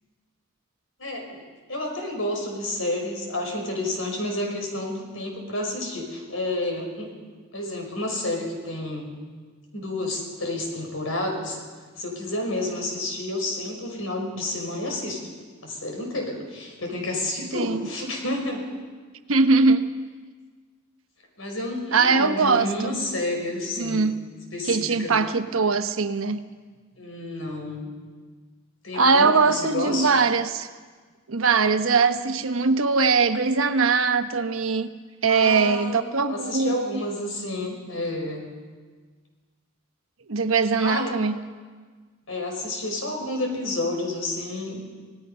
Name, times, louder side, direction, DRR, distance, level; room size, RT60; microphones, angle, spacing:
voice 1, 1.0-7.1 7.5-9.1 9.7-11.6 12.0-15.2 15.6-18.7 21.4-24.1 24.5-25.2 27.0-27.8 28.8-30.1 35.3-38.5 40.8-41.1 42.3-44.8, left 2 dB, 80° left, 1 dB, 5.5 m, -30 dB
voice 2, 17.5-17.8 19.3-19.9 21.9-23.0 23.8-24.2 24.7-26.4 28.9-30.7 31.3-34.9 35.2-37.0 40.3-41.4, right 4 dB, 90° right, 9 dB, 1.1 m, -21 dB
26.0 x 18.5 x 5.6 m, 1.5 s
head